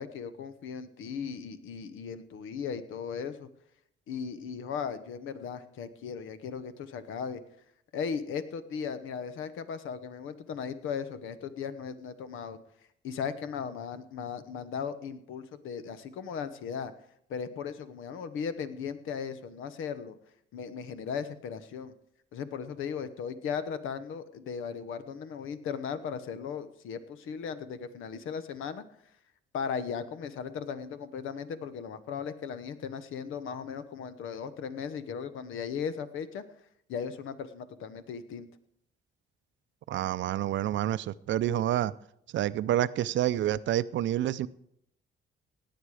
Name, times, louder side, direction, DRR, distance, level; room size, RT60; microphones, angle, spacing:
voice 1, 0.0-3.5 4.1-7.4 7.9-12.6 13.0-16.9 17.3-20.2 20.5-21.9 22.3-28.8 29.5-36.4 36.9-38.5, left 6 dB, 80° left, 1.0 m, -37 dB
voice 2, 39.9-41.9 42.3-44.5, right 12 dB, 70° right, 0.5 m, -28 dB
17.5 x 8.8 x 4.9 m
cardioid pair, 90°, 20 cm